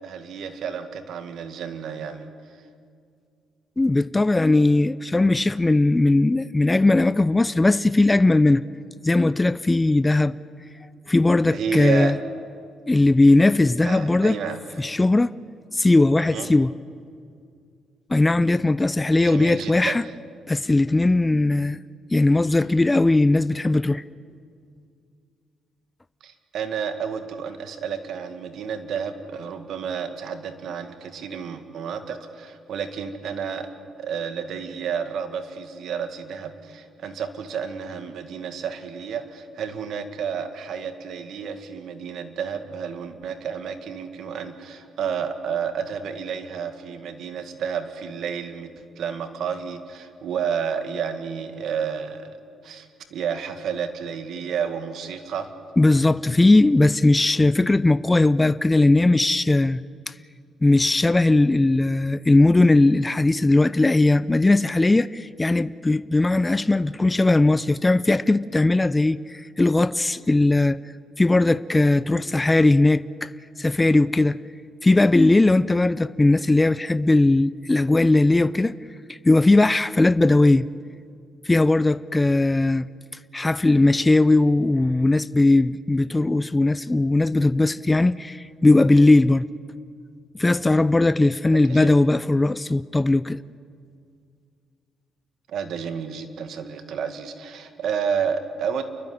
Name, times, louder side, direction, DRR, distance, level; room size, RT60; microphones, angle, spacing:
voice 1, 0.0-2.3 10.0-10.1 11.5-12.1 13.8-14.6 16.2-16.5 19.2-20.0 26.2-33.7 34.0-48.7 49.0-52.4 52.6-55.5 91.5-91.9 95.5-98.9, right 7 dB, 70° right, 2.0 m, -31 dB
voice 2, 3.8-8.6 9.0-10.4 11.1-12.2 12.9-14.4 14.8-15.4 15.7-16.7 18.1-20.0 20.5-21.8 22.1-24.0 55.8-59.8 60.6-70.8 71.2-73.3 73.6-74.4 74.8-78.8 79.1-80.7 81.5-82.9 83.3-89.5 90.3-93.4, left 2 dB, 15° left, 0.5 m, -19 dB
29.5 x 12.0 x 9.9 m
cardioid pair, 90°, 0 cm